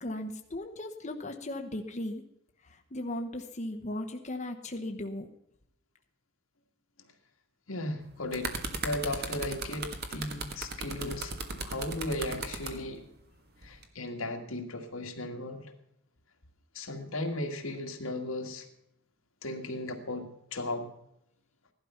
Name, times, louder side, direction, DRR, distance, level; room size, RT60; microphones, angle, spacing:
voice 1, 0.0-2.2 2.6-5.3, left 1 dB, 35° left, 3 dB, 1.0 m, -37 dB
voice 2, 7.7-8.5 8.8-13.0 13.6-15.6 16.7-18.7 19.4-20.9, left 1 dB, 85° left, 3 dB, 2.0 m, -36 dB
sound 1, 8.0-12.7 13.6-13.8, right 3 dB, 50° right, 1.6 m, -36 dB
16.5 x 12.0 x 5.8 m, 0.79 s
head